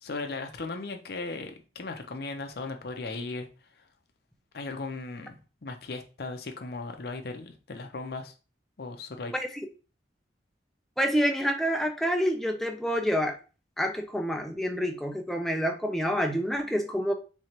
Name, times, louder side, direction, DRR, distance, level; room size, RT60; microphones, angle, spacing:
voice 1, 0.0-3.5 3.8-3.9 4.5-8.3 8.8-9.3, left 3 dB, 55° left, 5 dB, 0.6 m, -37 dB
voice 2, 11.0-13.4 13.8-17.1, equal, ahead, 3 dB, 0.4 m, -27 dB
3.7 x 3.1 x 2.8 m, 0.34 s
head